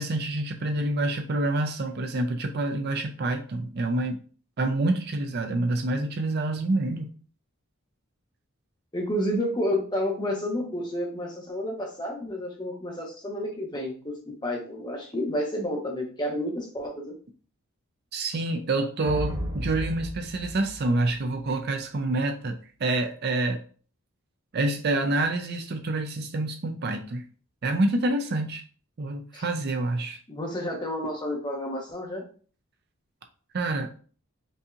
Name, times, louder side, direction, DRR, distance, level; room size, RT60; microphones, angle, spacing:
voice 1, 0.0-4.2 4.6-7.1 18.1-23.6 24.5-27.2 27.6-28.6 29.0-30.2 33.5-33.9, right 2 dB, 50° right, 5 dB, 0.5 m, -27 dB
voice 2, 8.9-14.1 14.4-17.1 29.3-29.4 30.3-32.2, left 1 dB, 20° left, 0 dB, 1.0 m, -30 dB
sound 1, 19.0-21.5, equal, 75° right, 1.1 m, -34 dB
5.4 x 2.7 x 2.4 m, 0.40 s
head